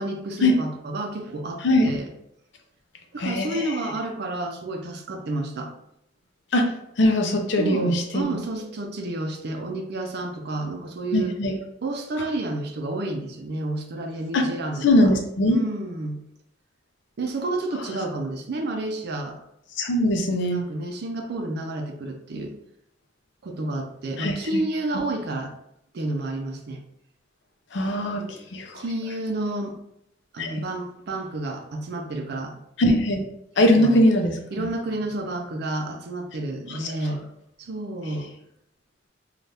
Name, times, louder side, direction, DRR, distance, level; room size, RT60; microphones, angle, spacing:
voice 1, 0.0-2.1 3.1-5.7 7.6-11.4 11.8-15.1 15.5-16.2 17.2-19.4 20.4-22.5 23.4-25.5 25.9-26.8 28.2-28.5 28.7-29.8 30.3-32.6 33.8-34.0 34.5-37.3 37.6-38.3, right 2 dB, 60° right, 4 dB, 0.5 m, -30 dB
voice 2, 3.2-3.8 6.5-6.7 7.0-8.3 11.1-11.5 14.3-14.4 14.8-15.6 19.8-20.6 24.2-24.6 27.7-28.2 28.5-28.8 30.4-30.5 32.8-33.2 33.6-34.7 36.7-37.0, left 1 dB, 65° left, 4 dB, 0.5 m, -21 dB
3.3 x 2.3 x 2.7 m, 0.78 s
head